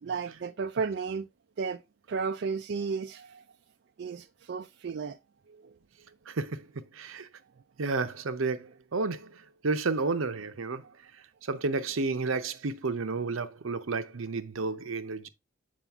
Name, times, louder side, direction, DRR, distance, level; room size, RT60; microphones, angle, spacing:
voice 1, 0.0-1.3 1.6-1.8 2.1-3.4 4.0-5.2 5.5-5.7 10.8-10.9, right 5 dB, 55° right, 0.3 m, -33 dB
voice 2, 6.3-6.7 6.9-7.3 7.8-9.3 9.6-10.8 11.4-15.3, right 3 dB, 80° right, 0.7 m, -31 dB
7.5 x 5.0 x 3.5 m
head